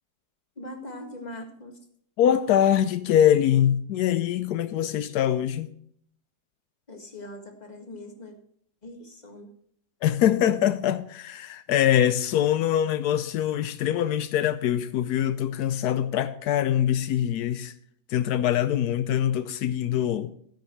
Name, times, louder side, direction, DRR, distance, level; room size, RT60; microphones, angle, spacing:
voice 1, 0.6-1.7 6.9-8.3 8.8-9.5, left 1 dB, 25° left, 1.9 m, -41 dB
voice 2, 2.2-5.7 10.0-17.7 18.1-20.3, left 10 dB, 85° left, 1.2 m, -23 dB
13.5 x 10.5 x 3.1 m
omnidirectional pair, 1.7 m